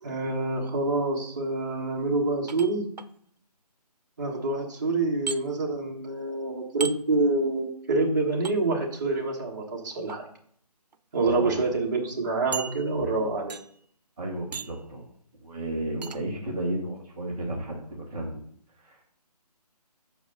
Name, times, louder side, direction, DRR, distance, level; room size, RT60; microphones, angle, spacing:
voice 1, 0.0-2.9 4.2-10.2 11.1-13.6, right 3 dB, 30° right, -2 dB, 1.4 m, -27 dB
sound 1, 2.5-3.1 5.3-5.4 6.8-7.0 8.4-8.6 9.9-10.2 10.9-11.0 11.4-11.5 12.5-13.1 13.5-13.8 14.5-14.9 16.0-16.2, right 6 dB, 80° right, 0.7 m, -36 dB
voice 2, 11.2-11.7 13.0-13.3 14.2-15.1 15.4-18.4 18.8-19.1, right 1 dB, 10° right, -10 dB, 0.8 m, -33 dB
6.3 x 5.0 x 6.4 m, 0.63 s
hypercardioid pair, 175°, 21 cm